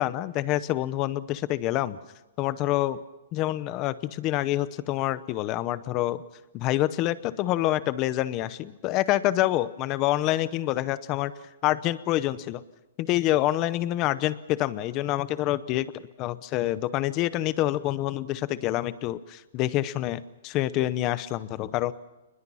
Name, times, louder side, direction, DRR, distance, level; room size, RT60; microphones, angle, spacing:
voice 1, 0.0-2.0 2.4-3.0 3.3-6.2 6.5-11.3 11.6-12.6 13.0-15.9 16.2-21.9, left 15 dB, 20° left, 16 dB, 0.8 m, -27 dB
28.5 x 21.0 x 5.7 m, 1.0 s
hypercardioid pair, 175°, 0 cm